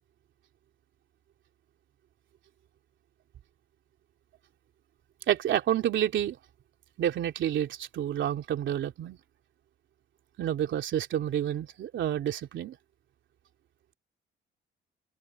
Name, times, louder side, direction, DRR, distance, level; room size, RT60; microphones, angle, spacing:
voice 1, 5.3-6.4 7.0-9.2 10.4-12.8, right 10 dB, 70° right, 3.1 m, -29 dB
open air
cardioid pair, 90°, 20 cm